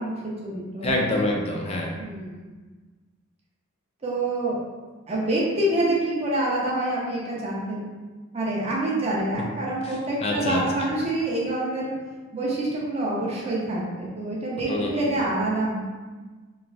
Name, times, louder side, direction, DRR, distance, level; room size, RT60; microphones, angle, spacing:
voice 1, 0.0-0.9 2.0-2.4 4.0-4.6 5.1-7.9 8.3-11.9 12.3-15.7, right 1 dB, 30° right, -5 dB, 0.5 m, -26 dB
voice 2, 0.8-1.9 9.8-10.6 14.7-15.3, left 1 dB, 30° left, -1 dB, 0.3 m, -27 dB
3.1 x 2.3 x 2.3 m, 1.4 s
head